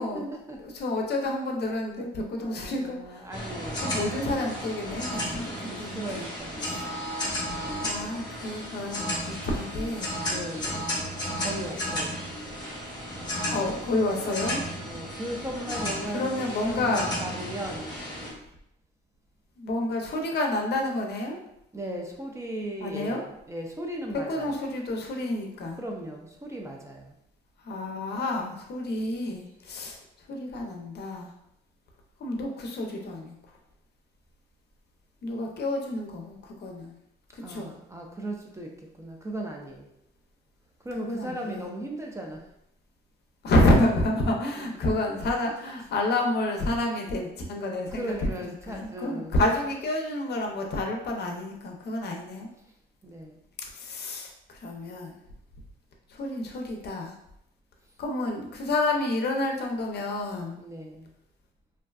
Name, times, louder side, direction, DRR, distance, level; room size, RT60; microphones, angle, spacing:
voice 1, 0.0-0.6 2.4-4.0 5.5-6.8 10.2-11.0 11.4-12.2 14.8-18.0 21.7-24.5 25.8-27.1 37.4-39.9 40.8-42.5 47.9-49.4 53.0-53.4 60.6-61.1, right 1 dB, 15° right, 0 dB, 0.4 m, -37 dB
voice 2, 0.6-3.3 3.8-6.2 6.7-6.9 7.8-10.2 11.3-11.6 13.4-14.6 16.1-17.1 19.6-21.4 22.8-23.2 24.3-25.8 27.6-31.3 32.2-33.4 35.2-37.0 37.3-37.8 41.0-41.7 43.4-52.5 53.6-55.2 56.1-57.1 58.0-60.6, left 1 dB, 55° left, 1 dB, 0.5 m, -29 dB
sound 1, 3.3-18.3, equal, 20° left, 0.9 m, -33 dB
2.5 x 2.2 x 2.3 m, 0.78 s
cardioid pair, 90°, 20 cm